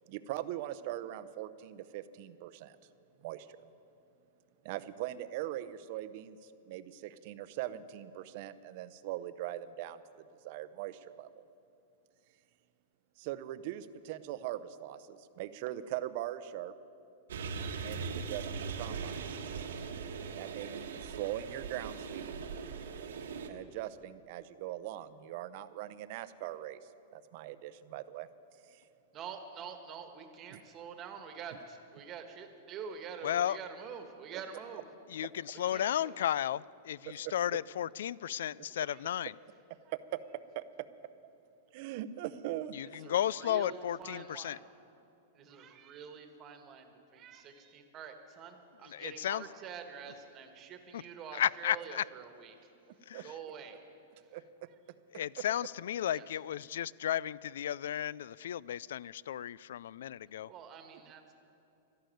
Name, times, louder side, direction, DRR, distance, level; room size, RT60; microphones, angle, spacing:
voice 1, 0.1-2.8 3.2-3.6 4.6-10.0 10.4-11.4 13.2-16.7 17.8-19.2 20.3-22.4 23.5-26.8 27.1-28.3 28.7-28.8 30.5-30.6 37.1-37.3 39.9-40.2 40.5-40.6 41.7-43.0 53.1-53.2 54.3-54.4, right 13 dB, 45° right, 14 dB, 0.6 m, -41 dB
sound 1, 17.3-23.5, right 5 dB, 90° right, 1.4 m, -40 dB
voice 2, 29.1-34.8 35.5-36.3 38.9-39.2 43.0-44.6 45.3-52.6 53.2-53.8 56.1-56.2 60.5-61.2, right 7 dB, 25° right, 6 dB, 1.4 m, -46 dB
voice 3, 33.2-33.6 35.1-39.3 42.7-44.6 48.9-49.5 50.9-51.0 51.3-52.0 53.1-53.3 55.1-60.5, left 11 dB, 75° left, 23 dB, 0.3 m, -34 dB
13.0 x 11.5 x 9.2 m, 2.8 s
supercardioid pair, 160°, 0 cm